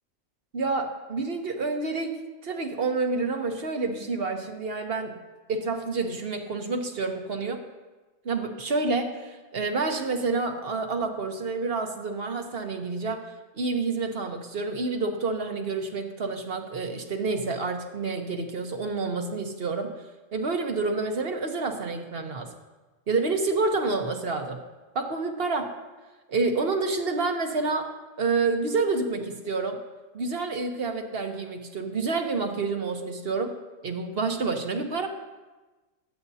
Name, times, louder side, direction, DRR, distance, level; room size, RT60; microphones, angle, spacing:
voice 1, 0.5-2.1 2.4-5.1 5.5-7.6 8.2-13.3 13.5-19.9 20.3-22.5 23.1-24.6 24.9-25.7 26.3-27.9 28.2-29.8 30.1-33.6 33.8-35.1, right 3 dB, 55° right, 4 dB, 1.3 m, -28 dB
21.5 x 8.7 x 2.8 m, 1.2 s
omnidirectional pair, 1.3 m